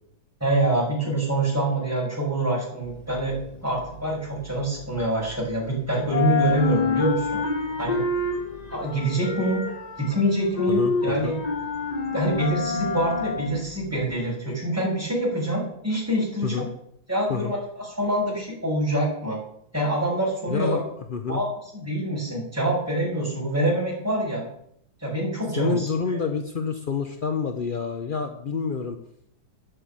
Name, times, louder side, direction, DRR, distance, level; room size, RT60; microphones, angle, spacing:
voice 1, 0.4-7.4 7.8-8.0 8.7-9.6 10.0-11.4 12.1-16.7 17.1-19.4 19.7-20.8 21.3-21.5 21.7-24.4 25.0-26.2, right 1 dB, 5° right, -4 dB, 5.8 m, -25 dB
sound 1, 2.8-5.7 6.0-14.1, left 4 dB, 25° left, 1.2 m, -28 dB
voice 2, 20.5-20.8 21.1-21.4 25.6-29.0, left 5 dB, 55° left, 6 dB, 0.5 m, -27 dB
10.0 x 8.1 x 8.7 m, 0.71 s
omnidirectional pair, 2.1 m